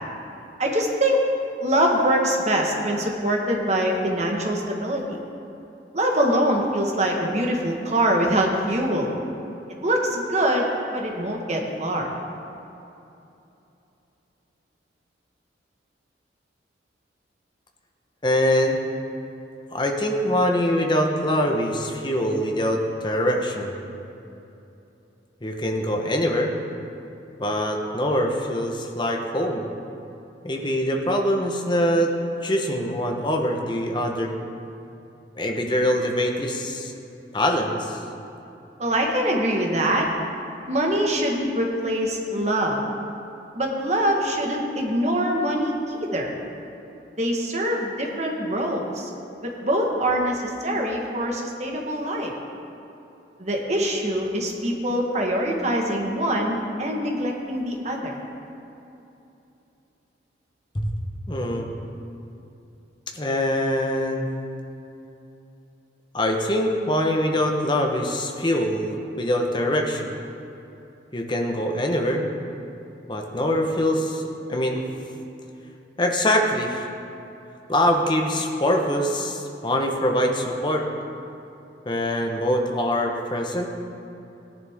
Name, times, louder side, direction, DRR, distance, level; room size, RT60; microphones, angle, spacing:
voice 1, 0.6-1.2 1.6-5.2 5.9-9.1 9.8-10.7 10.9-12.1 38.8-40.1 40.7-42.8 43.5-46.3 47.2-49.1 49.4-52.3 53.4-58.2, right 1 dB, 40° right, 0 dB, 1.5 m, -24 dB
voice 2, 18.2-18.8 19.7-23.8 25.4-26.5 27.4-29.6 30.4-32.1 32.4-34.3 35.4-36.9 37.3-38.0 60.7-60.9 61.3-61.7 63.1-64.3 66.1-70.2 71.1-72.3 73.1-74.2 74.5-74.8 76.0-76.9 77.7-80.8 81.8-83.7, left 1 dB, 25° left, 2 dB, 1.1 m, -23 dB
17.0 x 10.5 x 3.6 m, 2.9 s
head